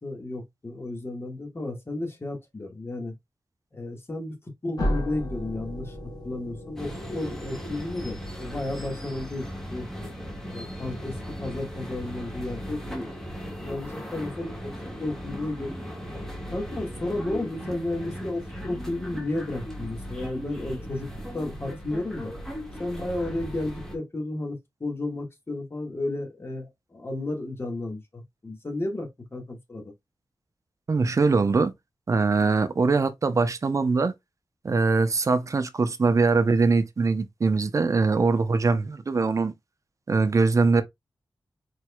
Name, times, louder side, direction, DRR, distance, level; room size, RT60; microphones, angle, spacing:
voice 1, 0.0-3.1 3.7-4.4 4.6-6.0 6.2-9.4 9.7-9.9 10.5-13.1 13.6-14.7 15.0-15.8 16.5-21.1 21.3-22.3 22.8-29.9, left 2 dB, 30° left, 1.7 m, -33 dB
sound 1, 4.8-9.5, equal, 55° left, 1.9 m, -34 dB
sound 2, 6.8-24.0, equal, 5° left, 1.6 m, -37 dB
voice 2, 30.9-31.7 32.1-34.1 34.6-39.5 40.1-40.8, right 4 dB, 40° right, 0.7 m, -22 dB
4.6 x 4.5 x 2.3 m
wide cardioid pair, 145°, 8 cm